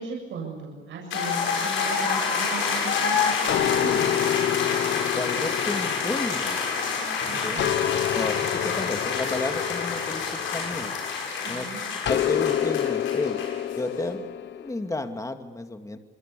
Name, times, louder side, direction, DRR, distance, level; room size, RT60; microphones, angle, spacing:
voice 1, 0.0-4.4 7.3-8.2 11.4-11.8, right 4 dB, 75° right, 0 dB, 7.8 m, -37 dB
sound 1, 1.1-13.8, left 5 dB, 85° left, 7.6 m, -28 dB
sound 2, 3.5-7.0 7.6-11.3 12.1-14.7, left 11 dB, 65° left, 1.3 m, -28 dB
voice 2, 5.1-6.6 7.4-7.8 8.1-10.9 11.5-11.7 12.1-13.4 13.8-14.2 14.5-16.0, left 2 dB, 15° left, 6 dB, 2.5 m, -32 dB
27.5 x 23.0 x 7.0 m, 1.2 s
cardioid pair, 90°, 20 cm